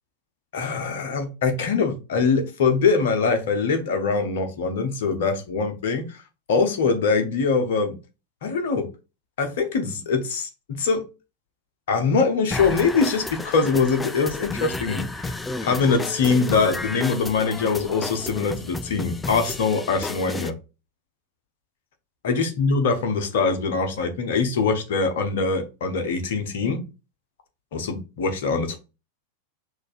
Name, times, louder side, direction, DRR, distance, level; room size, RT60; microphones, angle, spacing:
voice 1, 0.5-6.2 6.5-7.9 8.4-8.9 9.4-10.5 10.8-11.0 11.9-15.4 15.6-20.5 22.2-26.8 27.7-28.8, left 4 dB, 55° left, 0.9 m, -23 dB
sound 1, 12.5-20.5, left 3 dB, 10° left, 0.3 m, -32 dB
6.3 x 2.6 x 2.4 m
figure-of-eight pair, 90°, 0 cm